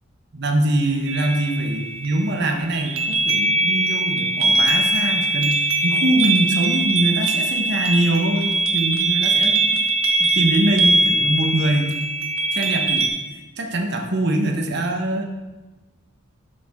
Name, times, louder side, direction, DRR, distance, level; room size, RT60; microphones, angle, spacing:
voice 1, 0.3-9.7 10.2-11.9 12.5-13.1 13.6-15.2, right 1 dB, 55° right, 3 dB, 1.1 m, -23 dB
sound 1, 1.1-13.1, right 2 dB, 90° right, 1.2 m, -21 dB
12.0 x 6.9 x 3.7 m, 1.1 s
head